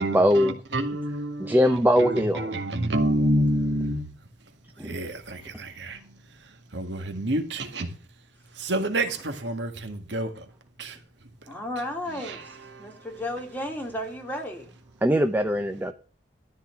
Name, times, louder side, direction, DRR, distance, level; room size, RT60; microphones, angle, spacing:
voice 1, 0.0-0.6 1.4-2.5 4.8-4.9 15.0-15.9, equal, 10° right, 0.8 m, -21 dB
voice 2, 0.7-1.6 2.1-4.0 4.8-6.0 6.7-7.9 8.6-10.3 10.8-10.9 12.3-12.4, right 1 dB, 80° right, 1.8 m, -27 dB
voice 3, 11.5-12.5 12.8-14.7, left 1 dB, 10° left, 3.1 m, -33 dB
13.0 x 4.4 x 7.4 m
head